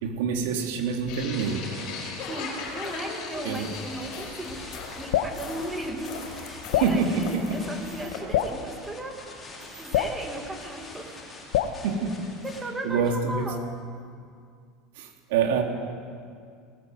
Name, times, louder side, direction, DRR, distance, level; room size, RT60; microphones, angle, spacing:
voice 1, 0.0-1.7 3.4-3.7 6.8-7.6 11.8-12.2 12.8-13.5 15.0-15.6, right 6 dB, 80° right, 3 dB, 3.0 m, -26 dB
sound 1, 1.1-8.2, left 4 dB, 45° left, 5.1 m, -38 dB
sound 2, 1.3-12.6, left 2 dB, 10° left, 3.6 m, -45 dB
voice 2, 2.2-9.3 9.8-11.2 12.4-13.6, right 1 dB, 10° right, 3 dB, 2.0 m, -36 dB
Drip, 5.1-5.4 6.7-7.0 8.3-8.6 9.9-10.2 11.5-11.8, left 11 dB, 90° left, 1.2 m, -25 dB
18.5 x 18.5 x 7.9 m, 2.2 s
cardioid pair, 170°, 0 cm